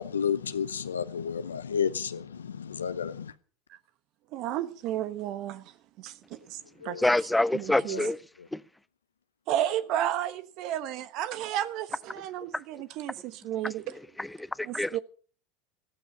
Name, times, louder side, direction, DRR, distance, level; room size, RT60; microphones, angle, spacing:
voice 1, 0.0-3.3 6.8-7.0 7.9-8.1 8.4-8.5, left 7 dB, 90° left, 0.7 m, -31 dB
voice 2, 4.3-5.7 6.0-7.0 7.5-8.0 9.5-14.0 14.6-15.0, right 12 dB, 55° right, 1.1 m, -32 dB
voice 3, 7.0-8.2 8.5-8.6 14.2-14.3 14.7-15.0, left 1 dB, 5° left, 0.6 m, -25 dB
14.5 x 13.5 x 5.5 m
hypercardioid pair, 80°, 0 cm